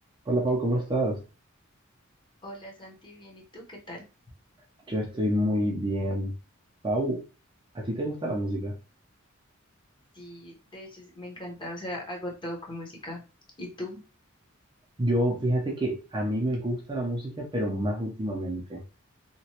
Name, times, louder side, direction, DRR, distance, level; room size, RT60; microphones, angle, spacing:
voice 1, 0.3-1.2 4.9-6.3 6.8-7.2 7.7-8.7 15.0-18.8, right 1 dB, 25° right, 0 dB, 0.5 m, -28 dB
voice 2, 2.4-4.0 10.1-13.2 13.6-14.0, left 1 dB, 25° left, -1 dB, 0.9 m, -39 dB
2.9 x 2.2 x 2.8 m, 0.31 s
head